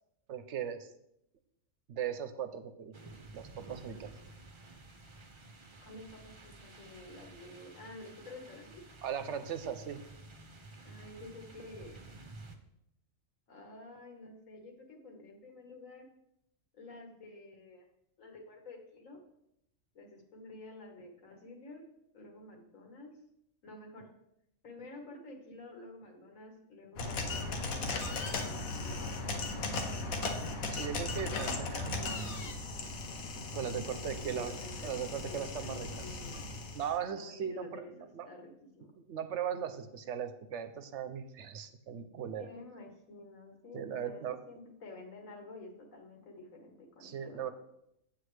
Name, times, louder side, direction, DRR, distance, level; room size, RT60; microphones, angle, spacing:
voice 1, 0.3-0.9 1.9-2.9 3.3-4.1 9.0-10.0 30.7-32.5 33.5-34.6 34.8-36.2 36.7-38.3 39.1-42.5 43.7-44.4 47.0-47.5, right 8 dB, 65° right, 9 dB, 0.9 m, -38 dB
sound 1, 2.9-12.6, right 2 dB, 30° right, 0.6 m, -52 dB
voice 2, 5.8-8.8 10.8-12.2 13.5-16.1 16.7-17.9 18.2-19.2 19.9-21.8 22.1-23.1 23.6-24.1 24.6-29.4 33.5-36.4 37.1-38.5 38.8-38.9 42.4-47.5, left 2 dB, 75° left, 2 dB, 1.8 m, -50 dB
sound 2, 27.0-36.9, left 3 dB, 90° left, 1.4 m, -37 dB
8.3 x 7.9 x 3.3 m, 0.79 s
omnidirectional pair, 1.4 m